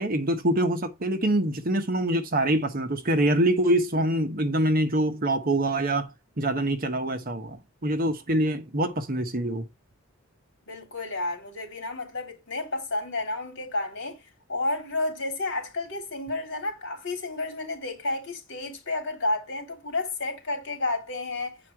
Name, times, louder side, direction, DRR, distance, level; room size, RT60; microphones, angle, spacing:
voice 1, 0.0-6.1 6.4-9.7, right 1 dB, 40° right, 1.0 m, -25 dB
voice 2, 10.7-14.2 14.5-21.6, left 2 dB, 55° left, 3.4 m, -31 dB
8.2 x 4.7 x 4.4 m
head